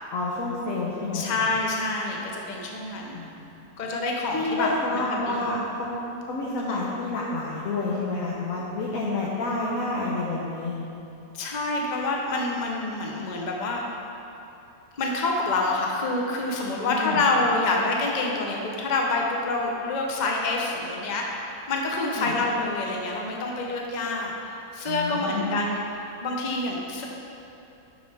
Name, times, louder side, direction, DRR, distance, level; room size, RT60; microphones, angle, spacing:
voice 1, 0.1-1.5 3.1-3.3 4.3-6.0 6.3-10.8 16.9-17.2 22.2-22.3 24.9-25.6, left 2 dB, 65° left, -5 dB, 1.3 m, -29 dB
voice 2, 1.1-3.2 3.8-5.5 6.6-6.8 11.3-13.8 15.0-21.3 21.7-24.3 24.7-25.8 26.2-27.0, left 2 dB, 35° left, -1 dB, 0.9 m, -27 dB
11.0 x 6.5 x 3.5 m, 2.8 s
omnidirectional pair, 1.6 m